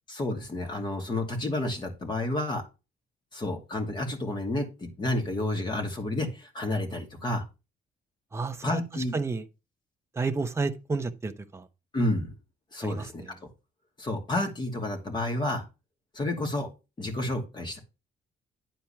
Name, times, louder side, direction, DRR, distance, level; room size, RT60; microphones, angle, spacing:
voice 1, 0.1-2.7 3.3-7.4 8.6-9.1 11.9-12.3 12.7-13.2 14.0-15.7 16.1-16.7 17.0-17.8, left 1 dB, 30° left, 2.5 m, -30 dB
voice 2, 8.3-9.4 10.2-11.6 12.8-13.1, right 3 dB, 15° right, 0.9 m, -31 dB
10.5 x 4.5 x 5.8 m
cardioid pair, 145°, 16 cm